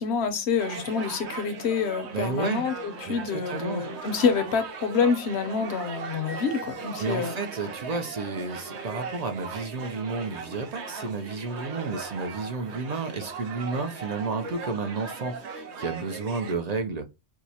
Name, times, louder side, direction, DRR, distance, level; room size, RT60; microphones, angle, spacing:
voice 1, 0.0-7.4, left 5 dB, 75° left, 0.9 m, -27 dB
sound 1, 0.6-16.5, right 4 dB, 85° right, 1.0 m, -38 dB
voice 2, 2.1-2.7 3.1-3.9 7.0-17.1, right 4 dB, 50° right, 0.5 m, -31 dB
4.5 x 2.0 x 2.7 m
omnidirectional pair, 1.1 m